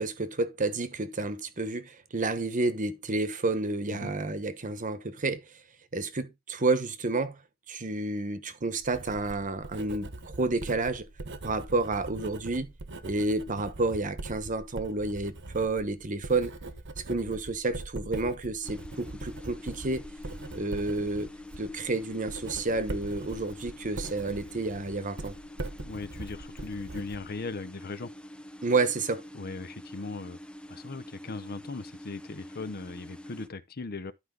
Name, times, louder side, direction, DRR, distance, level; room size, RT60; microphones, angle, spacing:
voice 1, 0.0-5.4 5.9-7.4 7.7-11.1 11.4-12.7 13.0-16.5 17.1-20.0 20.5-21.3 21.6-25.4 28.6-29.2, right 3 dB, 40° right, 1.1 m, -30 dB
Writing, 8.8-27.6, right 2 dB, 60° right, 1.1 m, -42 dB
sound 1, 18.6-33.5, left 1 dB, 5° left, 0.6 m, -46 dB
voice 2, 25.8-28.1 29.3-30.4 30.7-34.1, left 3 dB, 45° left, 0.7 m, -38 dB
11.5 x 4.9 x 3.8 m
head